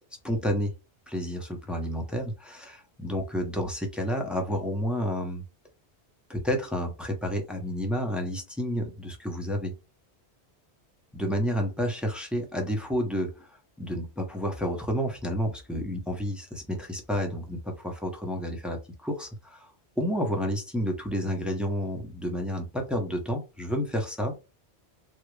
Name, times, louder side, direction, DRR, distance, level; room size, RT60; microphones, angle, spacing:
voice 1, 0.2-0.7 1.1-5.5 6.3-9.7 11.1-24.4, equal, ahead, 0.5 m, -30 dB
3.6 x 2.1 x 3.1 m
omnidirectional pair, 1.1 m